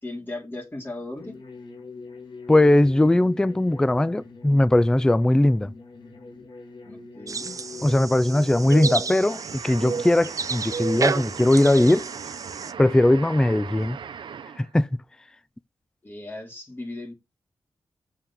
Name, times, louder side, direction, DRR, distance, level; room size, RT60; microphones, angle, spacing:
voice 1, 0.0-1.4 6.8-7.5 16.0-17.1, left 2 dB, 25° left, 2.9 m, -37 dB
sound 1, 1.2-9.1, left 4 dB, 80° left, 2.5 m, -43 dB
voice 2, 2.5-5.7 7.8-12.1 12.8-14.0 14.6-14.9, left 1 dB, 10° left, 0.3 m, -19 dB
sound 2, 7.3-12.7, right 5 dB, 45° right, 0.6 m, -31 dB
sound 3, 9.2-14.7, right 7 dB, 85° right, 0.8 m, -39 dB
7.4 x 6.7 x 3.8 m
wide cardioid pair, 100°, 8 cm